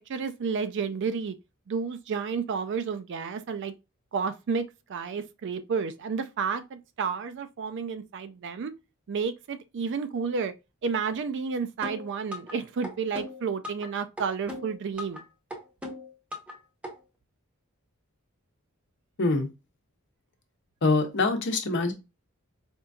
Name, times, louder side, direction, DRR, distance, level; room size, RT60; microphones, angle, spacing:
voice 1, 0.1-1.3 1.7-3.7 4.1-4.6 4.9-8.7 9.1-10.5 10.8-15.2, right 5 dB, 55° right, 0.4 m, -31 dB
sound 1, 11.8-12.5 12.8-13.9 14.2-15.2 15.5-16.5 16.8-16.9, left 1 dB, 5° right, 0.8 m, -38 dB
voice 2, 20.8-21.9, left 3 dB, 55° left, 0.8 m, -24 dB
4.3 x 2.6 x 2.3 m
head